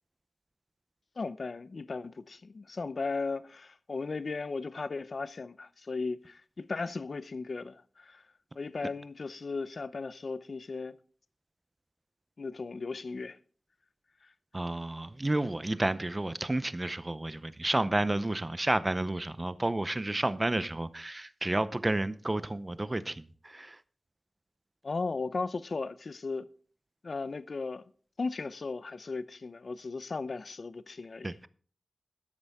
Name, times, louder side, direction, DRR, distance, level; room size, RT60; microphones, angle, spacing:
voice 1, 1.2-8.2 8.6-11.0 12.4-13.4 24.8-26.5 27.0-27.8 28.2-31.3, left 4 dB, 55° left, 0.6 m, -36 dB
voice 2, 14.5-23.8 31.2-31.5, right 2 dB, 25° right, 0.7 m, -31 dB
13.5 x 9.6 x 3.6 m
wide cardioid pair, 100°, 0 cm